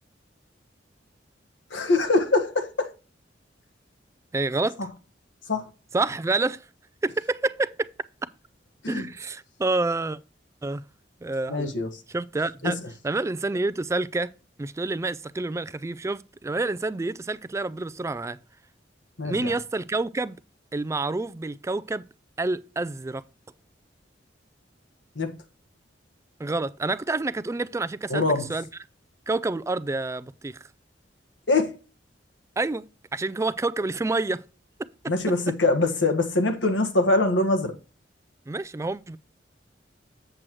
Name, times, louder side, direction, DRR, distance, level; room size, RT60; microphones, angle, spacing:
voice 1, 1.7-2.9 5.5-5.7 8.8-9.1 11.5-11.9 12.6-12.7 19.2-19.5 25.1-25.3 28.1-28.5 31.5-31.7 35.1-37.7, left 2 dB, 90° left, 1.6 m, -23 dB
voice 2, 4.3-4.8 5.9-6.6 7.0-7.9 8.9-10.2 10.6-10.8 11.2-11.7 12.1-12.8 13.0-14.3 14.6-18.4 19.2-20.4 20.7-22.0 22.4-23.2 26.4-28.2 28.5-28.7 29.3-30.6 32.6-32.8 33.1-34.4 38.5-39.2, right 2 dB, 15° right, 0.3 m, -28 dB
7.7 x 7.5 x 3.1 m
head